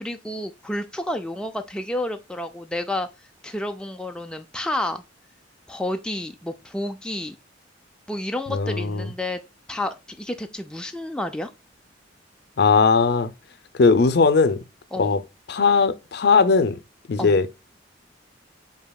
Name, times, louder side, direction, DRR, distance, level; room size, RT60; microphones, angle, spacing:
voice 1, 0.0-5.0 5.7-7.4 8.1-9.4 9.7-11.5 14.9-15.1 17.2-17.4, left 1 dB, 5° left, 0.3 m, -30 dB
voice 2, 8.5-9.1 12.6-13.3 13.8-14.6 15.0-15.2 15.5-16.8 17.1-17.5, left 4 dB, 60° left, 0.5 m, -18 dB
6.8 x 2.8 x 2.2 m
head